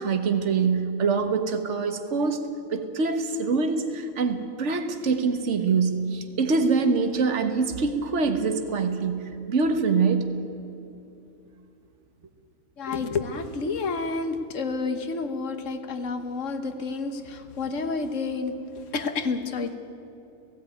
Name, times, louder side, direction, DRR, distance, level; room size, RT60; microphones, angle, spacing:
voice 1, 0.0-2.4 2.7-10.4, right 4 dB, 60° right, 6 dB, 1.7 m, -24 dB
voice 2, 12.8-19.8, left 4 dB, 70° left, 9 dB, 1.6 m, -30 dB
17.0 x 17.0 x 9.3 m, 2.7 s
omnidirectional pair, 1.4 m